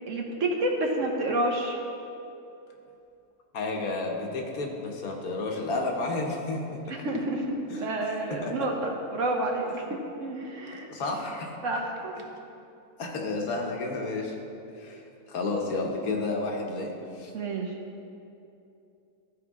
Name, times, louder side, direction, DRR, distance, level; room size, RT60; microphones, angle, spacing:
voice 1, 0.1-1.8 6.9-9.8 10.2-10.9 11.6-12.1 17.3-17.7, right 2 dB, 60° right, 1 dB, 1.2 m, -29 dB
voice 2, 3.5-6.8 7.7-7.8 8.4-8.5 10.9-11.5 13.0-14.4 14.7-15.0 15.3-17.3, left 3 dB, 75° left, 1 dB, 1.4 m, -31 dB
14.0 x 4.8 x 3.6 m, 2.7 s
omnidirectional pair, 1.6 m